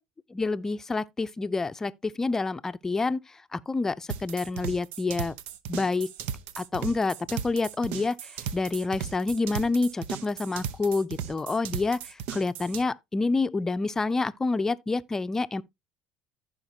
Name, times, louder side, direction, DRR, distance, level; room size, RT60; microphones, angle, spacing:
voice 1, 0.3-3.2 3.5-5.3 5.7-6.1 6.6-15.6, left 3 dB, 20° left, 0.6 m, -28 dB
sound 1, 4.1-12.8, right 9 dB, 75° right, 0.8 m, -36 dB
15.0 x 5.1 x 2.8 m
supercardioid pair, 90°, 2 cm